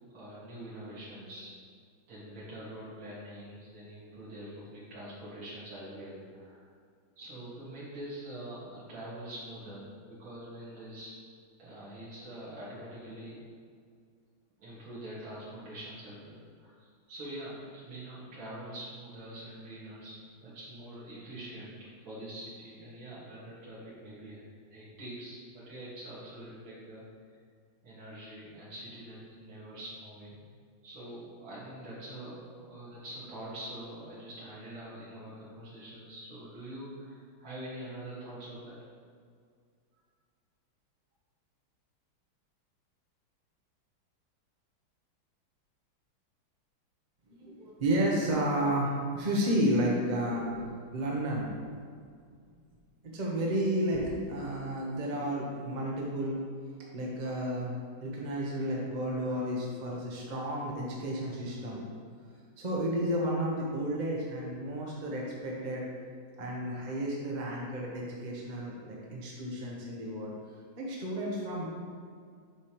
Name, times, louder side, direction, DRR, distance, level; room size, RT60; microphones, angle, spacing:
voice 1, 0.1-1.5 2.1-6.7 7.2-11.2 11.6-13.5 14.6-27.0 27.8-30.4 30.8-38.8, right 1 dB, 80° right, -9 dB, 2.7 m, -44 dB
voice 2, 47.3-51.5 53.1-56.4 56.9-57.7 58.0-61.8 62.6-65.8 66.4-70.3 70.8-71.7, right 1 dB, 50° right, -3 dB, 0.5 m, -32 dB
7.9 x 5.0 x 3.0 m, 2.1 s
omnidirectional pair, 2.3 m